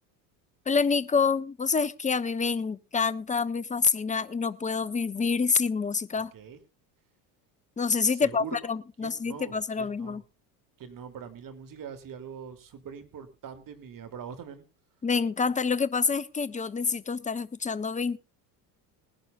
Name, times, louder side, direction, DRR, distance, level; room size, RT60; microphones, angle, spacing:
voice 1, 0.7-6.3 7.8-10.2 15.0-18.2, left 5 dB, 15° left, 15 dB, 0.9 m, -27 dB
voice 2, 8.1-8.6 9.0-10.2 10.8-14.7, right 7 dB, 45° right, 9 dB, 3.2 m, -43 dB
20.5 x 11.5 x 2.5 m, 0.29 s
supercardioid pair, 90°, 47 cm